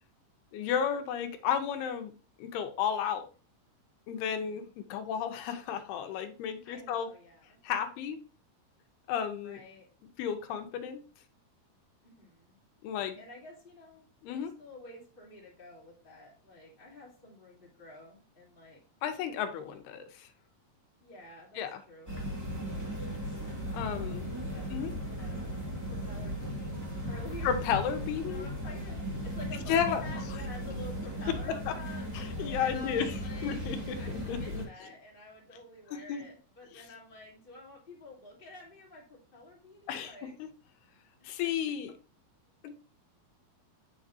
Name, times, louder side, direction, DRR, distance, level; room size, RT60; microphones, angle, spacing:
voice 1, 0.5-2.1 2.4-3.3 4.1-7.1 7.6-8.2 9.1-9.6 10.2-11.0 12.8-13.2 14.2-14.5 19.0-20.3 21.6-21.8 23.7-24.3 24.7-24.9 27.4-28.4 29.7-30.0 31.7-31.8 32.1-33.1 33.4-34.0 34.3-34.6 36.1-36.2 36.7-36.8 39.9-40.5 41.2-41.9 42.6-42.9, left 8 dB, 85° left, 7 dB, 2.8 m, -33 dB
voice 2, 4.2-4.7 6.6-7.6 9.4-9.9 12.0-12.6 13.1-18.8 21.0-21.6 21.9-22.1 23.9-25.4 25.9-27.5 28.2-32.1 32.6-33.6 34.0-40.3 41.2-41.7, left 2 dB, 15° left, -5 dB, 2.4 m, -50 dB
sound 1, 22.1-34.6, equal, 5° right, 1.3 m, -37 dB
8.0 x 6.3 x 2.7 m, 0.36 s
omnidirectional pair, 4.5 m